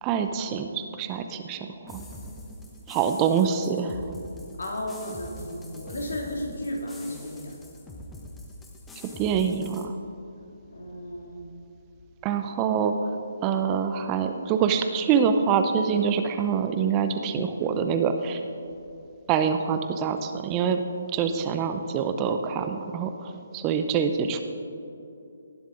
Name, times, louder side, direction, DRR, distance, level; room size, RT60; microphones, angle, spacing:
voice 1, 0.0-2.0 2.9-4.0 9.0-10.0 12.2-18.4 19.3-20.8 21.1-24.4, right 7 dB, 25° right, 8 dB, 0.6 m, -25 dB
sound 1, 1.9-9.9, left 1 dB, 10° left, 1.0 m, -44 dB
voice 2, 4.6-7.6 10.7-11.4, left 1 dB, 70° left, 0 dB, 2.5 m, -34 dB
18.0 x 7.4 x 3.7 m, 2.6 s
figure-of-eight pair, 145°, 0 cm